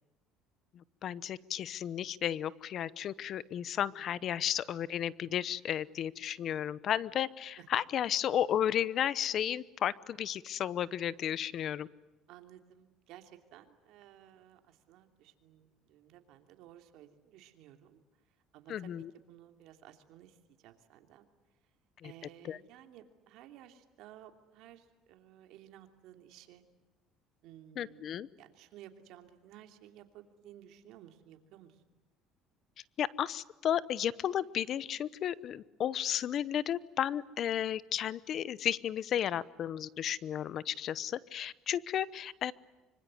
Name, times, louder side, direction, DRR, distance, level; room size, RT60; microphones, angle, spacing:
voice 1, 0.7-11.9 18.7-19.1 22.0-22.1 22.4-22.6 27.8-28.3 33.0-42.5, left 10 dB, 50° left, 19 dB, 0.8 m, -33 dB
voice 2, 12.3-18.0 18.5-21.3 22.0-26.6 27.4-31.8, right 11 dB, 70° right, 6 dB, 2.9 m, -56 dB
25.0 x 25.0 x 9.6 m, 1.1 s
cardioid pair, 110°, 0 cm